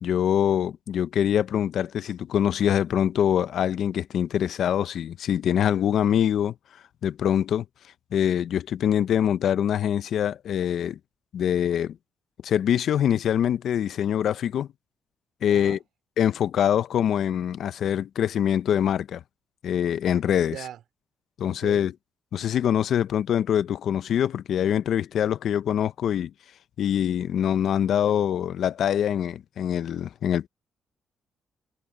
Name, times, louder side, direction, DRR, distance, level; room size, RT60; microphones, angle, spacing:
voice 1, 0.0-6.5 7.0-7.6 8.1-11.0 11.3-12.0 12.4-14.7 15.4-15.8 16.2-19.2 19.6-20.7 21.4-21.9 22.3-26.3 26.8-30.5, left 9 dB, 70° left, 0.7 m, -24 dB
voice 2, 15.4-15.8 20.5-20.8 21.4-21.8, right 10 dB, 75° right, 2.6 m, -39 dB
cardioid pair, 90°, 0 cm